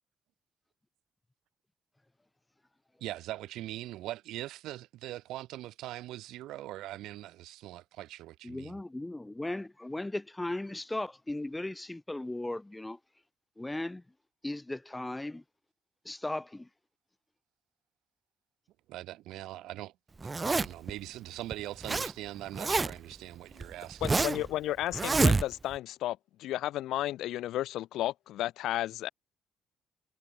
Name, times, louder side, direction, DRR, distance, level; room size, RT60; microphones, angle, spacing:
voice 1, 3.0-8.8 18.9-19.9 20.5-24.2, right 15 dB, 90° right, 7.9 m, -41 dB
voice 2, 8.4-13.0 13.6-14.0 14.4-15.4 16.1-16.7, left 2 dB, 10° left, 2.1 m, -37 dB
Zipper (clothing), 20.2-20.9 21.5-22.1 22.4-23.1 23.6-24.5 24.9-25.8, right 3 dB, 25° right, 1.1 m, -27 dB
voice 3, 24.0-29.1, left 14 dB, 85° left, 1.6 m, -33 dB
cardioid pair, 90°, 0 cm